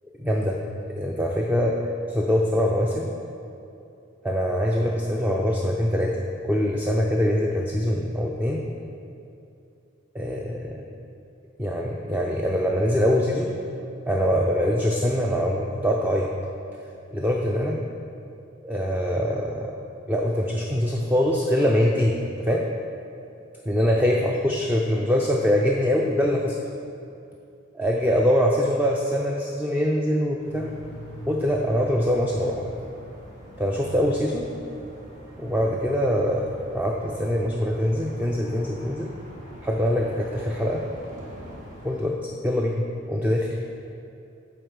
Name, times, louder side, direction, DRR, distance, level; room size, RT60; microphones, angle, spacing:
voice 1, 0.2-0.6 1.0-1.8 2.1-3.1 4.2-6.2 6.4-8.6 10.1-10.9 11.6-13.6 14.1-16.3 17.1-17.8 18.6-19.7 20.1-22.7 23.7-26.6 27.7-30.7 31.3-32.7 33.6-34.5 35.4-39.1 39.6-40.8 41.8-42.2 42.4-43.6, equal, 10° right, 0 dB, 0.4 m, -23 dB
sound 1, 30.4-42.0, equal, 40° right, 1.7 m, -43 dB
7.9 x 4.8 x 6.4 m, 2.7 s
head